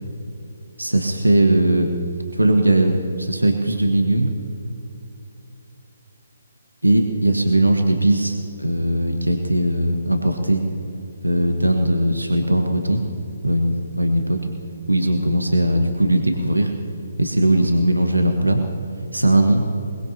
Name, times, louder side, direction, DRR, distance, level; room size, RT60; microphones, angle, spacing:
voice 1, 0.8-1.9 2.3-4.3 6.8-10.6 11.2-13.0 13.4-14.4 14.9-16.7 17.2-18.6 19.1-19.6, right 1 dB, 90° right, 4 dB, 1.4 m, -19 dB
22.5 x 21.5 x 2.9 m, 2.8 s
figure-of-eight pair, 140°, 0 cm